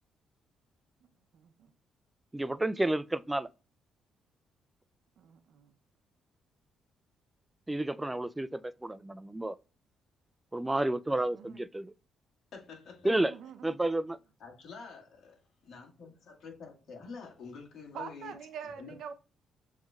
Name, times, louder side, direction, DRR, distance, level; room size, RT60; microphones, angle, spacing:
voice 1, 1.3-1.7 5.2-5.7 11.3-11.6 13.2-13.8 17.9-19.1, right 7 dB, 75° right, 0.7 m, -45 dB
voice 2, 2.3-3.5 7.7-9.6 10.5-11.9 13.0-13.3 13.6-14.2, right 1 dB, 10° right, 0.3 m, -31 dB
voice 3, 12.5-13.3 14.4-19.0, left 5 dB, 70° left, 2.0 m, -48 dB
7.1 x 3.1 x 2.4 m
cardioid pair, 90°, 0 cm